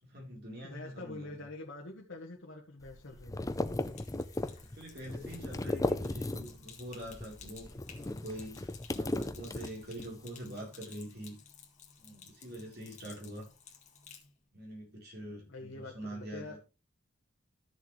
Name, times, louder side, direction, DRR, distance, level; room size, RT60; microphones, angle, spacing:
voice 1, 0.0-1.4 4.6-11.4 12.0-13.5 14.5-16.6, equal, 55° right, 4.0 m, -45 dB
voice 2, 0.6-3.5 15.5-16.6, left 2 dB, 65° left, 1.4 m, -45 dB
sound 1, 2.8-6.7 7.0-10.1, left 2 dB, 15° left, 0.6 m, -36 dB
Sink (filling or washing), 3.5-14.3, left 6 dB, 35° left, 1.9 m, -55 dB
13.5 x 6.9 x 3.2 m
head